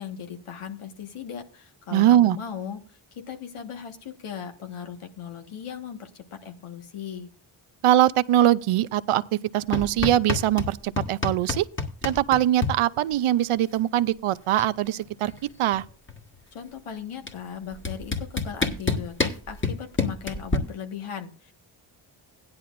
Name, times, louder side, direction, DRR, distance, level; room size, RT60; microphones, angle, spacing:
voice 1, 0.0-7.3 16.5-21.5, left 8 dB, 85° left, 1.6 m, -38 dB
voice 2, 1.9-2.4 7.8-11.7 12.0-15.3 15.6-15.8, right 12 dB, 85° right, 0.6 m, -22 dB
sound 1, 9.7-10.7 11.0-12.7 14.0-14.1 14.3-14.7 15.0-16.4 17.3-17.4 17.8-20.6, left 3 dB, 25° left, 1.6 m, -27 dB
16.0 x 10.5 x 2.5 m
cardioid pair, 75°, 49 cm